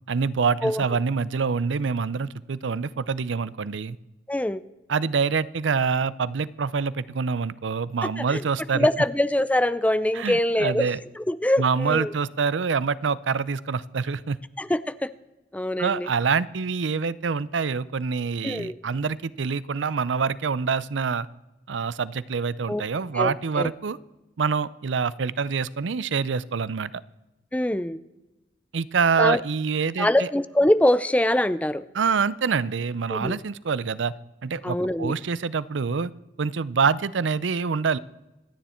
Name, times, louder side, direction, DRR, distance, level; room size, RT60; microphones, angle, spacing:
voice 1, 0.1-4.0 4.9-8.9 10.1-11.0 11.6-14.4 15.8-21.3 21.7-24.0 24.4-27.0 28.7-30.3 31.9-34.1 34.4-36.1 36.4-38.0, right 5 dB, 85° right, 19 dB, 0.6 m, -26 dB
voice 2, 4.3-4.6 8.2-8.4 8.7-10.9 11.2-12.1 14.6-15.1 15.5-16.1 18.4-18.8 22.7-22.8 23.1-23.7 27.5-28.0 29.2-29.4 30.0-31.8 33.1-33.4 34.6-35.1, left 1 dB, 10° left, 15 dB, 0.5 m, -23 dB
26.0 x 9.6 x 4.4 m, 1.0 s
head